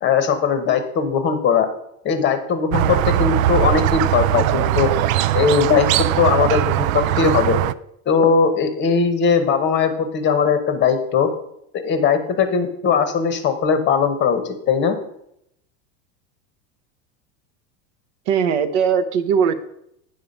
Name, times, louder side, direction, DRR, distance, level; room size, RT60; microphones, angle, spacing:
voice 1, 0.0-1.7 2.0-4.9 5.3-7.6 8.1-11.3 11.7-15.0, left 6 dB, 25° left, 9 dB, 0.9 m, -19 dB
Squeak, 2.7-7.7, right 13 dB, 80° right, 0.5 m, -20 dB
voice 2, 18.3-19.6, right 7 dB, 60° right, 11 dB, 0.8 m, -19 dB
9.2 x 5.6 x 5.2 m, 0.76 s
supercardioid pair, 150°, 40 cm